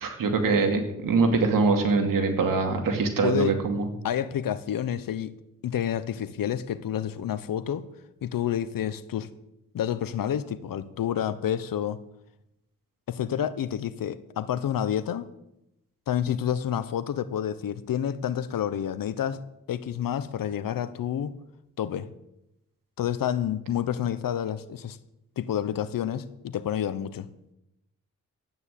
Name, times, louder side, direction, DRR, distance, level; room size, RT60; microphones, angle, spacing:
voice 1, 0.0-3.9, right 4 dB, 85° right, 5 dB, 2.6 m, -23 dB
voice 2, 3.2-3.5 4.0-5.3 5.6-7.9 8.2-9.3 9.7-12.0 13.1-15.3 16.1-19.4 19.7-21.3 21.8-22.1 23.0-25.0 25.4-27.3, left 10 dB, 85° left, 14 dB, 1.0 m, -29 dB
12.5 x 9.7 x 8.3 m, 0.86 s
cardioid pair, 65°, 33 cm